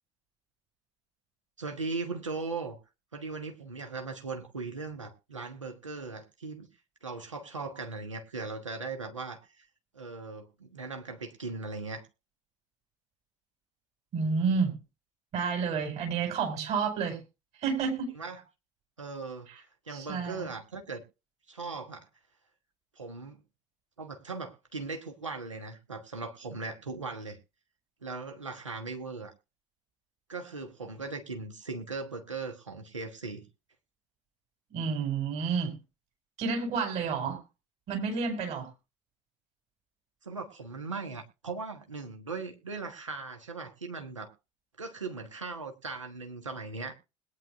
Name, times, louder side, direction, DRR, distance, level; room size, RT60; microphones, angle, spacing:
voice 1, 1.6-2.8 3.1-6.7 7.0-9.7 9.9-12.1 18.1-18.4 19.0-19.5 19.8-21.0 21.5-22.1 22.9-23.4 24.0-27.4 28.0-29.3 30.3-33.5 40.2-44.3 44.8-46.9, right 4 dB, 85° right, 4 dB, 1.3 m, -38 dB
voice 2, 14.1-14.7 15.3-17.2 17.6-18.1 19.5-19.6 19.9-20.5 34.7-35.7 36.4-37.4 37.9-38.7, right 5 dB, 45° right, 4 dB, 5.0 m, -30 dB
21.0 x 9.6 x 2.5 m, 0.30 s
figure-of-eight pair, 60°, 16 cm